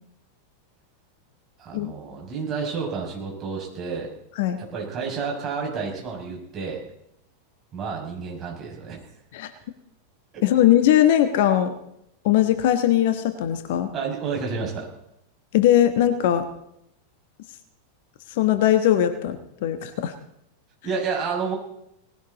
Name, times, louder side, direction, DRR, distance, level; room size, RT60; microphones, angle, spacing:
voice 1, 1.6-4.1 4.6-6.8 7.7-9.0 10.3-10.4 13.9-14.9 20.8-21.5, right 5 dB, 25° right, -1 dB, 6.3 m, -30 dB
voice 2, 10.4-11.7 12.2-13.9 15.5-16.5 18.3-20.1, left 11 dB, 50° left, 9 dB, 1.3 m, -20 dB
19.0 x 16.0 x 4.0 m, 0.77 s
figure-of-eight pair, 90°, 0 cm